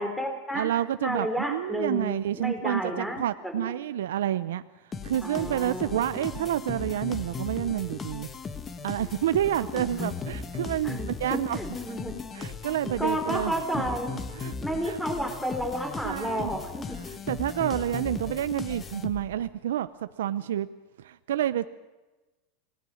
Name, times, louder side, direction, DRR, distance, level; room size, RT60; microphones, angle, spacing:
voice 1, 0.0-0.7 1.0-3.8 5.2-6.0 9.6-9.9 10.8-12.2 13.0-14.2 14.6-17.0, equal, 5° left, 5 dB, 4.0 m, -32 dB
voice 2, 0.5-4.6 5.0-8.3 8.8-11.6 12.3-13.5 14.4-14.5 14.9-15.0 16.0-16.5 17.3-19.9 20.2-20.7 21.0-21.7, right 11 dB, 90° right, 12 dB, 0.7 m, -29 dB
sound 1, 4.9-19.5, left 5 dB, 20° left, 1.5 m, -37 dB
25.5 x 18.5 x 6.4 m, 1.1 s
supercardioid pair, 125°, 0 cm